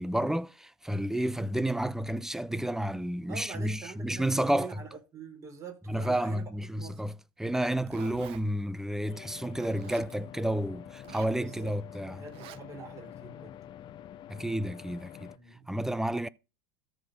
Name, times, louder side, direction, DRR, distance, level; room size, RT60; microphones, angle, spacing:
voice 1, 0.0-4.7 5.9-12.2 14.3-15.3 15.7-16.3, right 1 dB, 5° right, 0.6 m, -31 dB
voice 2, 3.3-6.4 6.8-7.1 11.4-11.8 12.1-13.5 15.3-15.7, right 5 dB, 25° right, 5.0 m, -45 dB
Zipper (clothing), 7.5-8.4 9.5-10.1 10.9-11.4 12.3-12.6, right 15 dB, 50° right, 0.8 m, -47 dB
sound 1, 9.1-15.4, left 11 dB, 40° left, 0.8 m, -47 dB
13.5 x 4.8 x 5.1 m
supercardioid pair, 110°, 12 cm